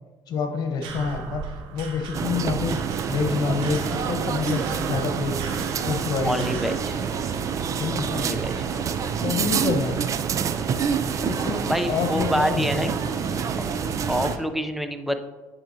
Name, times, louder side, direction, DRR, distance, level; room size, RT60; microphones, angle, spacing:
voice 1, 0.3-5.4 5.8-6.7 7.7-8.3 9.2-10.0 11.0-13.0, left 5 dB, 60° left, 5 dB, 1.1 m, -28 dB
sound 1, 0.8-6.8, right 5 dB, 80° right, 0.9 m, -38 dB
sound 2, 2.1-14.4, right 7 dB, 45° right, 0.4 m, -27 dB
sound 3, 3.0-14.4, right 2 dB, 60° right, 2.0 m, -37 dB
voice 2, 6.2-6.9 8.1-8.5 11.7-12.9 14.1-15.2, equal, ahead, 8 dB, 0.6 m, -26 dB
8.9 x 5.7 x 2.8 m, 1.2 s
supercardioid pair, 90°, 8 cm